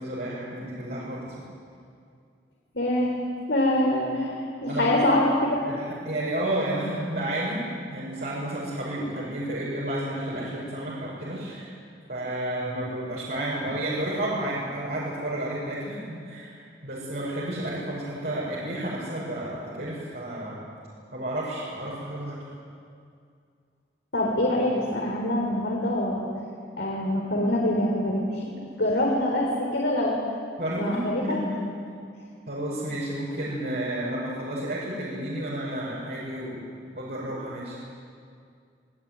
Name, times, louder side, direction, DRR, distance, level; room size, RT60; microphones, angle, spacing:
voice 1, 0.0-1.4 4.7-4.9 5.7-7.6 7.9-11.7 12.1-16.6 16.8-20.6 21.1-22.4 30.6-31.6 32.5-36.6 36.9-37.8, right 1 dB, 60° right, -6 dB, 6.4 m, -31 dB
voice 2, 2.7-3.1 3.5-5.6 24.1-26.3 26.8-28.5 28.8-30.2 30.8-31.4, left 1 dB, 75° left, -2 dB, 4.1 m, -25 dB
27.0 x 19.0 x 9.4 m, 2.3 s
head